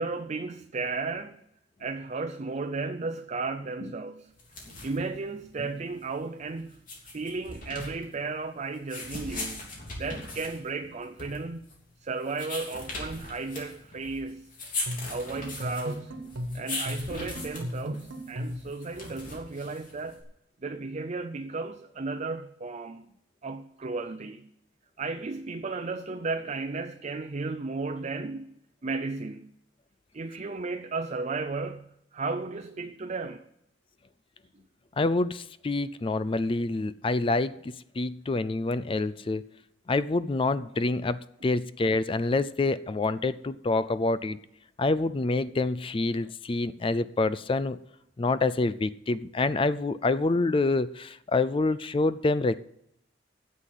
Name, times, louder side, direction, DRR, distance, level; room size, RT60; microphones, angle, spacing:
voice 1, 0.0-1.4 1.8-4.3 4.8-6.8 7.1-11.7 12.0-14.5 15.1-16.1 16.5-20.2 20.6-23.1 23.4-24.5 25.0-28.5 28.8-29.5 30.1-33.4, right 3 dB, 35° right, 0.5 m, -34 dB
sound 1, 4.3-20.2, left 2 dB, 45° left, 3.1 m, -40 dB
sound 2, 14.9-18.7, equal, 85° right, 1.5 m, -36 dB
voice 2, 35.0-39.4 39.9-44.4 44.8-47.8 48.2-52.6, left 3 dB, 25° left, 0.4 m, -27 dB
9.8 x 7.5 x 8.3 m
head